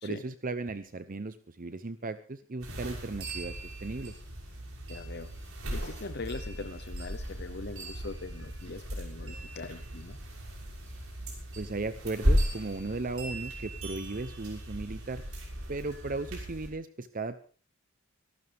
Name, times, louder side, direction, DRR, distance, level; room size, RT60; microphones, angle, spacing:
voice 1, 0.0-4.1 11.6-15.2 15.7-17.4, right 3 dB, 40° right, 12 dB, 0.7 m, -36 dB
sound 1, 2.6-16.7, equal, 65° right, 6.3 m, -35 dB
voice 2, 4.9-5.3 5.7-10.2, left 3 dB, 50° left, 10 dB, 0.8 m, -41 dB
25.0 x 12.5 x 3.5 m, 0.39 s
head